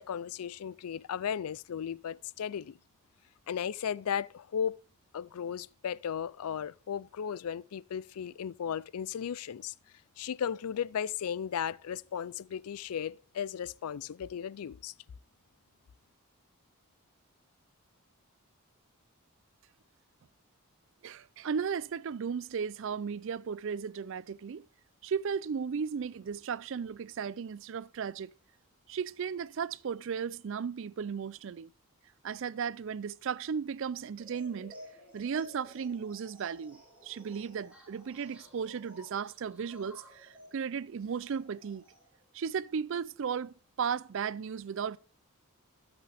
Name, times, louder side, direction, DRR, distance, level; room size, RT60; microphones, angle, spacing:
voice 1, 0.0-2.8 3.5-4.8 5.1-9.7 10.2-14.9, left 8 dB, 80° left, 0.4 m, -35 dB
voice 2, 21.0-24.7 25.0-28.3 28.9-31.7 32.2-34.7 35.1-41.8 42.3-45.0, right 6 dB, 60° right, 0.4 m, -35 dB
sound 1, 34.2-42.2, equal, 5° right, 3.7 m, -54 dB
13.5 x 6.0 x 3.4 m
head